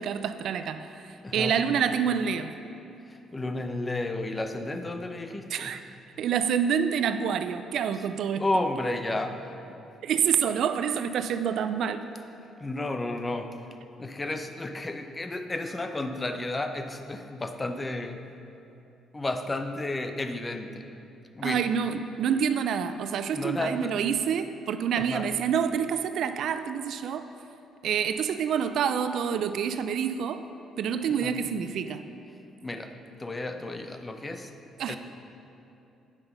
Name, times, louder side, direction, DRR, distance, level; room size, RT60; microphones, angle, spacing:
voice 1, 0.0-1.1 1.3-2.5 5.5-5.8 6.2-8.4 10.0-12.0 21.4-27.3 27.8-30.4 30.8-32.0 34.8-35.0, right 7 dB, 70° right, 10 dB, 0.4 m, -27 dB
voice 2, 1.2-1.6 3.1-5.7 8.4-9.6 12.6-13.6 14.0-18.3 19.1-20.9 21.3-21.7 23.3-24.0 25.0-25.3 31.2-31.3 32.6-32.9 33.2-34.5 34.9-35.0, left 2 dB, 25° left, 7 dB, 0.7 m, -32 dB
8.8 x 5.7 x 5.4 m, 2.8 s
supercardioid pair, 60°, 0 cm